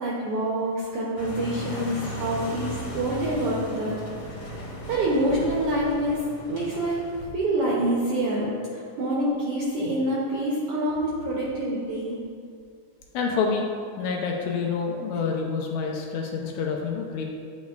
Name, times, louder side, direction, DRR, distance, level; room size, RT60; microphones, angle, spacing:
voice 1, 0.0-4.0 4.4-4.5 4.9-6.2 6.5-7.0 7.3-12.2, right 1 dB, 80° right, -5 dB, 1.3 m, -26 dB
sound 1, 1.2-7.2, equal, 45° left, 2.2 m, -36 dB
voice 2, 13.1-13.7 14.0-17.3, left 5 dB, 80° left, 1 dB, 1.8 m, -27 dB
10.5 x 4.2 x 2.3 m, 2.3 s
omnidirectional pair, 3.5 m